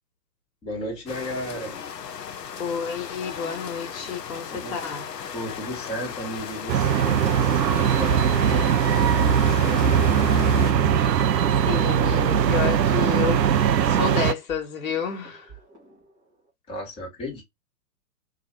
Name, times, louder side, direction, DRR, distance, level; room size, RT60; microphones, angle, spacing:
voice 1, 0.6-1.8 4.5-4.8 5.3-10.1 16.7-17.4, equal, 10° left, 1.1 m, -34 dB
sound 1, 1.1-10.7, left 7 dB, 75° left, 0.6 m, -36 dB
voice 2, 2.6-5.0 11.6-13.4 13.8-15.5, left 7 dB, 55° left, 1.1 m, -30 dB
sound 2, 6.7-14.3, right 8 dB, 80° right, 0.5 m, -20 dB
sound 3, 8.7-9.6 9.9-10.1 10.5-10.6 11.1-12.1 12.5-16.5, right 6 dB, 10° right, 0.5 m, -49 dB
2.5 x 2.4 x 3.0 m
figure-of-eight pair, 110°, 50 cm